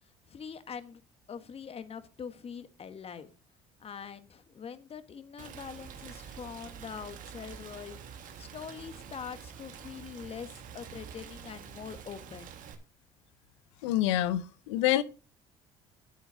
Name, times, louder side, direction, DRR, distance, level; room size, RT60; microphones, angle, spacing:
voice 1, 0.3-1.0 1.3-3.3 3.8-8.0 8.4-12.5, left 7 dB, 40° left, 1.4 m, -43 dB
Rain, 5.4-12.8, right 7 dB, 65° right, 1.6 m, -47 dB
voice 2, 13.8-15.0, left 13 dB, 85° left, 0.6 m, -27 dB
9.3 x 7.9 x 4.7 m
hypercardioid pair, 65°, 15 cm